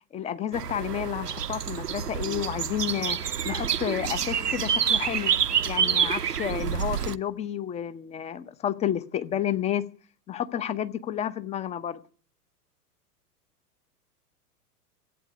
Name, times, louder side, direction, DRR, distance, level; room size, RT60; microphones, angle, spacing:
voice 1, 0.1-5.3 5.7-9.8 10.3-12.0, left 10 dB, 15° left, 0.7 m, -31 dB
sound 1, 0.5-7.1, right 8 dB, 80° right, 0.7 m, -27 dB
14.5 x 9.0 x 8.1 m
figure-of-eight pair, 95°, 46 cm